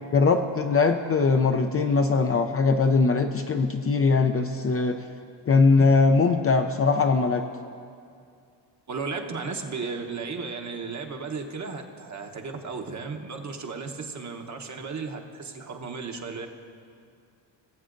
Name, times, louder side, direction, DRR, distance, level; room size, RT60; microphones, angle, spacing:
voice 1, 0.1-5.0 5.5-7.5, left 4 dB, 30° left, 6 dB, 0.5 m, -21 dB
voice 2, 8.9-16.5, right 4 dB, 40° right, 3 dB, 1.0 m, -35 dB
19.5 x 7.4 x 2.6 m, 2.3 s
supercardioid pair, 75°, 46 cm